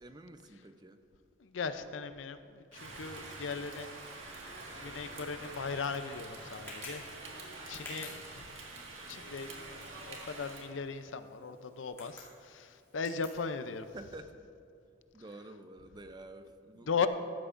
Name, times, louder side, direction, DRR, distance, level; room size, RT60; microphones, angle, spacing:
voice 1, 0.0-1.0 13.9-14.4 15.1-17.1, right 2 dB, 20° right, 9 dB, 0.4 m, -49 dB
voice 2, 1.4-3.9 4.8-7.0 7.7-8.5 9.1-13.9 16.9-17.1, left 5 dB, 80° left, 10 dB, 0.5 m, -38 dB
Rain, 2.7-10.7, right 2 dB, 90° right, 1.7 m, -46 dB
Tick, 5.0-14.2, left 1 dB, 15° left, 2.5 m, -54 dB
15.0 x 12.5 x 2.5 m, 2.4 s
head